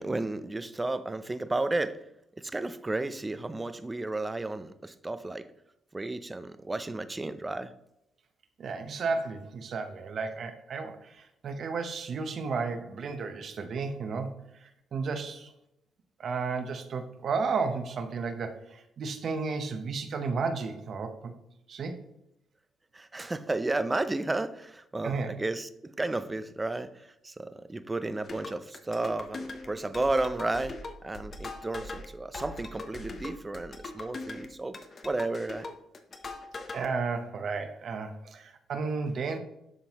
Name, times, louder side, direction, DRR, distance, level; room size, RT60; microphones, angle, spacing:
voice 1, 0.0-2.0 2.4-5.5 5.9-7.7 22.9-26.9 27.2-34.8 35.0-35.7, right 2 dB, 20° right, 0.5 m, -32 dB
voice 2, 8.6-14.3 14.9-15.5 16.2-18.6 19.0-21.3 21.7-22.0 25.0-25.3 31.5-31.6 36.7-39.4, right 4 dB, 55° right, 0.9 m, -33 dB
sound 1, 28.2-36.9, left 3 dB, 40° left, 0.8 m, -41 dB
11.0 x 3.8 x 3.0 m
cardioid pair, 90°, 0 cm